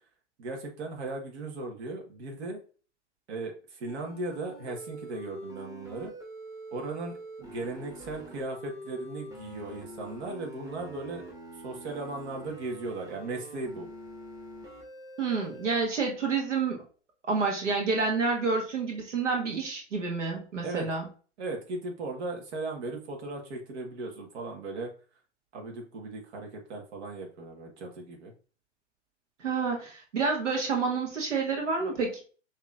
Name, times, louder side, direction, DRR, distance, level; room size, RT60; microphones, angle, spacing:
voice 1, 0.4-2.6 3.3-6.1 6.7-11.2 11.6-13.9 20.6-20.9 21.4-24.9 25.5-28.3, right 2 dB, 65° right, 1 dB, 1.5 m, -37 dB
sound 1, 3.9-15.8, right 1 dB, 10° right, 1.2 m, -45 dB
voice 2, 15.2-16.8 17.3-21.1 29.4-32.2, right 4 dB, 85° right, 1 dB, 1.5 m, -29 dB
6.6 x 3.1 x 2.5 m, 0.39 s
hypercardioid pair, 115°, 36 cm